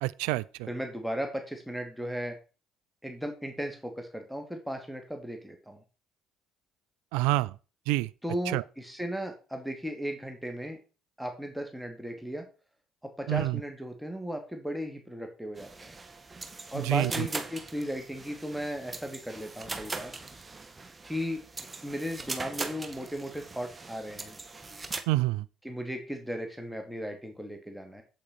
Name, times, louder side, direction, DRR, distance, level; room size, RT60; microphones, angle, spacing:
voice 1, 0.0-0.4 7.1-7.5 7.9-8.1 8.5-8.6 13.3-13.6 16.7-17.3 25.1-25.4, right 17 dB, 70° right, 0.4 m, -27 dB
voice 2, 0.7-2.4 3.0-5.8 8.2-10.8 11.2-12.4 13.0-15.9 16.7-20.1 21.0-21.4 21.8-24.4 25.6-28.0, equal, ahead, 2.5 m, -36 dB
sound 1, 15.6-25.0, right 3 dB, 25° right, 1.7 m, -40 dB
8.5 x 8.3 x 4.5 m
figure-of-eight pair, 50°, 0 cm